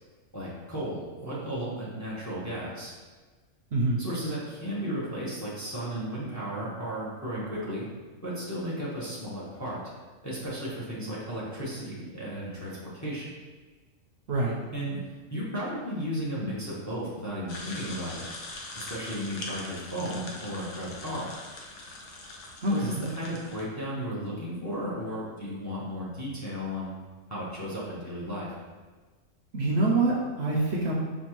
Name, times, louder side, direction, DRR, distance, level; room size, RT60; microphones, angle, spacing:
voice 1, 0.3-2.9 4.0-7.8 8.2-9.8 10.2-13.3 14.7-15.0 15.3-18.3 18.8-21.3 22.7-26.9 27.3-28.5, equal, 15° left, -6 dB, 0.7 m, -34 dB
voice 2, 3.7-4.0 14.3-14.6 22.6-23.0 29.5-30.9, right 2 dB, 60° right, -3 dB, 0.8 m, -25 dB
sound 1, 17.5-23.6, left 2 dB, 70° left, 1.0 m, -42 dB
5.4 x 2.3 x 3.0 m, 1.4 s
omnidirectional pair, 1.3 m